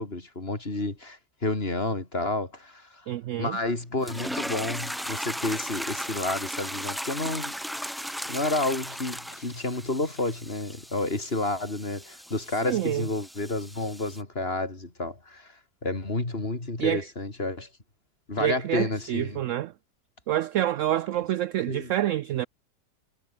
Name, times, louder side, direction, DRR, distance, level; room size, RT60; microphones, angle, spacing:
voice 1, 0.0-3.0 3.4-7.6 8.3-15.5 15.8-17.7 18.3-19.4 21.7-21.9, left 2 dB, 35° left, 3.9 m, -30 dB
voice 2, 3.1-3.6 12.6-13.1 16.8-17.1 18.4-19.7 20.3-22.5, right 13 dB, 75° right, 0.7 m, -27 dB
sound 1, 4.0-14.2, equal, ahead, 0.5 m, -36 dB
omnidirectional pair, 1.8 m